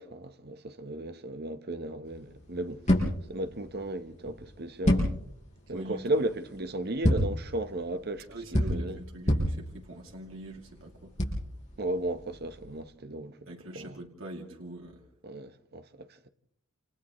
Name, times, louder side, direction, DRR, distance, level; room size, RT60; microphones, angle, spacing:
voice 1, 0.0-2.8 3.3-5.1 5.7-9.0 11.8-13.5 13.7-14.0 15.2-16.3, right 1 dB, 50° right, 1.1 m, -35 dB
sound 1, 2.1-12.8, equal, 35° left, 6.1 m, -30 dB
voice 2, 5.7-6.0 8.3-11.1 13.5-15.0, right 1 dB, 75° right, 2.8 m, -43 dB
29.5 x 28.5 x 3.2 m
head